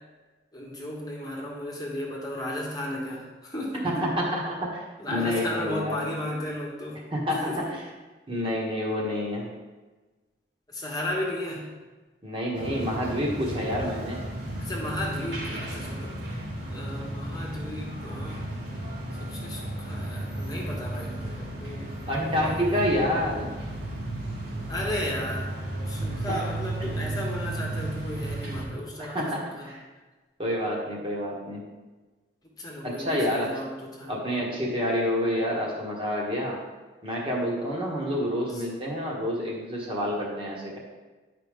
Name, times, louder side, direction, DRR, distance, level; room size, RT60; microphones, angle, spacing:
voice 1, 0.5-4.1 5.0-7.0 7.3-7.6 10.7-11.7 14.6-16.1 16.7-18.5 19.2-22.5 24.7-25.5 25.9-29.2 29.6-29.7 32.6-34.1, left 1 dB, 20° left, -3 dB, 1.2 m, -34 dB
voice 2, 3.8-6.1 7.1-7.8 8.3-9.5 12.2-14.3 22.1-23.5 26.3-26.5 26.8-26.9 29.0-29.8 30.4-31.6 32.8-33.6 34.1-36.6 37.0-40.8, equal, 30° right, -3 dB, 1.4 m, -28 dB
sound 1, 12.5-28.6, right 1 dB, 75° right, 2.2 m, -34 dB
10.0 x 5.1 x 3.6 m, 1.3 s
head